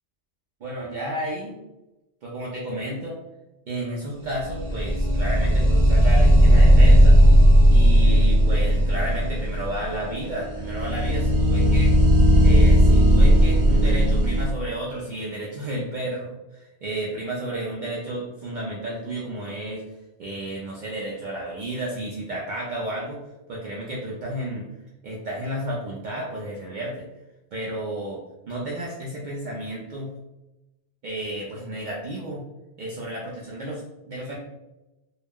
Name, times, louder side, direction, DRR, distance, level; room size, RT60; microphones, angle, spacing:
voice 1, 0.6-1.6 2.2-3.2 3.7-7.2 7.7-11.9 12.4-19.8 20.2-23.2 23.5-24.7 25.0-27.1 27.5-30.1 31.0-32.4 32.8-34.4, right 1 dB, 60° right, -4 dB, 0.5 m, -32 dB
sound 1, 4.3-14.5, equal, 30° right, 0.9 m, -16 dB
2.3 x 2.0 x 3.4 m, 0.99 s
omnidirectional pair, 1.1 m